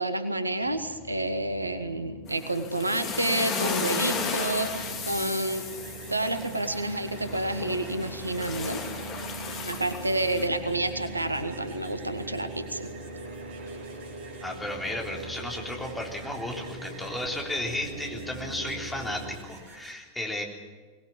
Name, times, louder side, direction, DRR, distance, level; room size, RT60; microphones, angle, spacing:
voice 1, 0.0-5.6 6.1-8.8 9.6-12.9, right 1 dB, 85° right, 11 dB, 1.3 m, -29 dB
sound 1, 0.6-19.4, right 2 dB, 70° right, 3.1 m, -41 dB
sound 2, 2.3-10.5, left 5 dB, 35° left, 2.9 m, -35 dB
sound 3, 2.9-19.9, right 4 dB, 50° right, 4.5 m, -50 dB
voice 2, 14.4-20.4, left 1 dB, 5° left, 0 dB, 3.7 m, -34 dB
23.0 x 19.5 x 7.2 m, 1.4 s
figure-of-eight pair, 90°, 0 cm